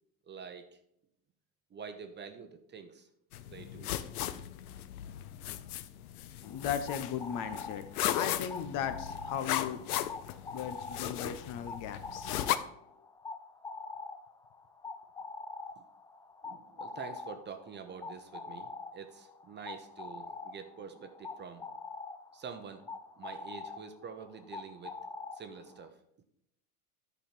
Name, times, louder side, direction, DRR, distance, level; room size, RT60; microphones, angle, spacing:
voice 1, 0.2-0.8 1.7-3.1 3.4-4.0 15.8-15.9 16.4-21.7 22.3-22.9 23.2-25.0 25.3-26.0, right 6 dB, 25° right, 8 dB, 0.9 m, -47 dB
sound 1, 3.3-12.6, left 12 dB, 85° left, 0.7 m, -37 dB
voice 2, 6.4-7.8 8.1-9.8 10.5-12.5, left 8 dB, 45° left, 10 dB, 0.9 m, -37 dB
sound 2, 6.4-25.9, left 4 dB, 10° left, 0.3 m, -45 dB
10.5 x 5.5 x 4.4 m, 0.76 s
supercardioid pair, 110°, 43 cm